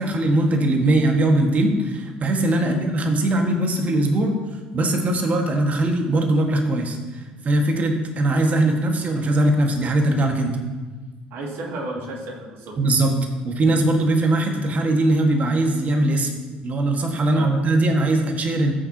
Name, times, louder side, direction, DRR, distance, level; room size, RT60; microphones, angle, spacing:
voice 1, 0.0-4.4 4.7-10.6 12.8-13.2 13.4-16.3 16.6-18.7, right 1 dB, 35° right, 3 dB, 1.9 m, -20 dB
voice 2, 11.3-12.8 17.3-17.6, right 1 dB, 50° right, -1 dB, 2.6 m, -33 dB
15.5 x 8.7 x 3.0 m, 1.3 s
figure-of-eight pair, 60°, 5 cm